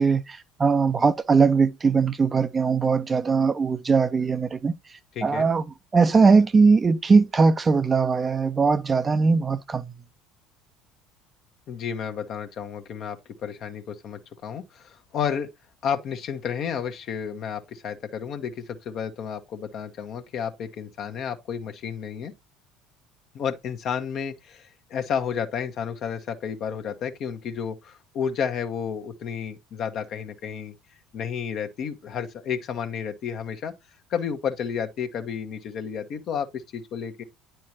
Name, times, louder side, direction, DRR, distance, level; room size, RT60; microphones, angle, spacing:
voice 1, 0.0-4.7 5.2-5.6 5.9-9.8, right 4 dB, 25° right, 0.5 m, -20 dB
voice 2, 5.1-5.5 11.7-15.5 15.8-22.3 23.3-30.7 31.1-33.7 34.1-37.2, left 7 dB, 50° left, 1.0 m, -31 dB
9.5 x 4.5 x 2.9 m
figure-of-eight pair, 65°, 0 cm